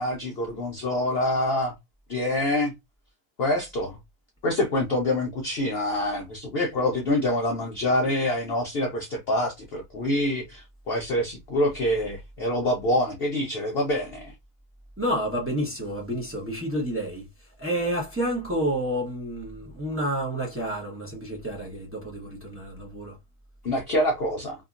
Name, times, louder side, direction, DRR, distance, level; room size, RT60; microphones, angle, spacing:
voice 1, 0.0-1.7 2.1-2.7 3.4-4.0 4.4-14.3 23.6-24.6, left 1 dB, 55° left, 0.7 m, -26 dB
voice 2, 15.0-17.2 17.6-23.1, equal, 10° right, 0.8 m, -29 dB
2.8 x 2.7 x 2.4 m
omnidirectional pair, 1.6 m